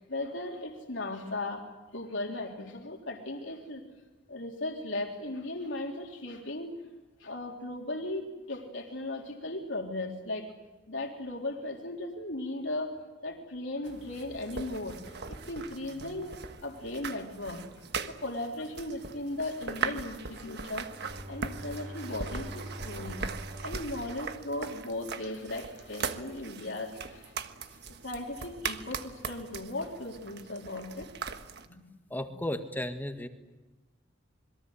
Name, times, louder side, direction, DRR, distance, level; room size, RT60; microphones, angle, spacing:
voice 1, 0.0-1.6 1.9-3.8 4.3-6.8 7.2-10.5 10.9-13.0 13.2-15.0 15.3-17.6 18.1-23.2 23.6-27.3 27.9-31.1 31.7-31.8 32.3-32.4, left 2 dB, 70° left, 1 dB, 3.6 m, -37 dB
sound 1, 13.8-31.6, right 5 dB, 60° right, 1.5 m, -40 dB
Bowed string instrument, 20.8-25.1, equal, 40° right, 4.6 m, -45 dB
voice 2, 32.1-33.3, left 1 dB, 10° left, 6 dB, 1.8 m, -34 dB
27.0 x 22.0 x 8.0 m, 1.2 s
head